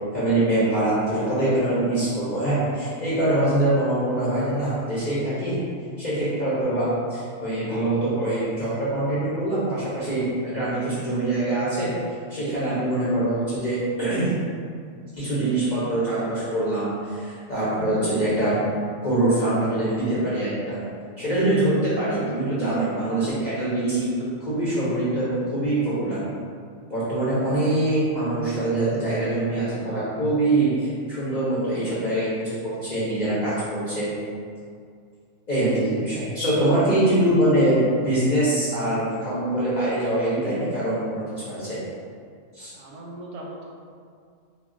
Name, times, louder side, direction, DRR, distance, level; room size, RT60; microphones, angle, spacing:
voice 1, 0.1-5.6 6.0-11.9 12.3-14.3 15.1-18.6 19.0-20.8 21.2-24.1 24.4-26.2 26.9-34.1 35.5-37.8 38.0-41.8 42.5-42.7, right 1 dB, 55° left, -10 dB, 0.5 m, -24 dB
voice 2, 42.7-43.6, right 1 dB, 70° right, -3 dB, 0.8 m, -39 dB
2.3 x 2.2 x 3.6 m, 2.2 s
omnidirectional pair, 1.4 m